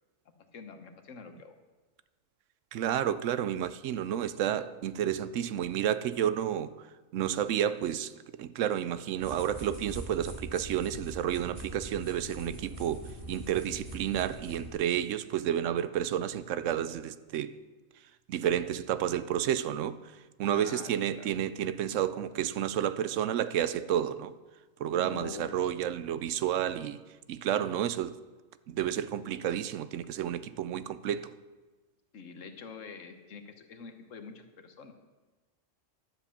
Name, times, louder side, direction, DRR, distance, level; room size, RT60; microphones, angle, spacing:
voice 1, 0.5-1.6 20.5-21.3 24.9-25.7 32.1-34.9, left 5 dB, 75° left, 7 dB, 1.4 m, -45 dB
voice 2, 2.7-6.7 7.1-8.1 8.4-13.0 13.3-17.5 18.3-20.0 20.4-24.3 24.8-27.0 27.3-28.1 28.7-31.3, right 10 dB, 75° right, 15 dB, 0.9 m, -30 dB
sound 1, 9.2-14.7, right 1 dB, 25° right, 2.3 m, -43 dB
11.0 x 7.4 x 7.0 m, 1.3 s
omnidirectional pair, 1.3 m